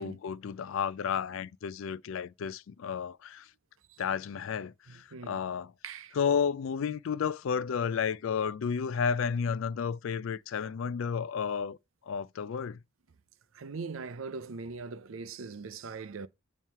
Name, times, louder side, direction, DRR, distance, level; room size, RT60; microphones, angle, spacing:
voice 1, 0.0-3.5 4.0-5.7 6.2-11.8 12.1-12.8, left 6 dB, 70° left, 0.3 m, -32 dB
voice 2, 4.9-5.4 5.8-6.2 13.5-16.3, right 4 dB, 75° right, 0.6 m, -41 dB
7.3 x 3.0 x 5.4 m
head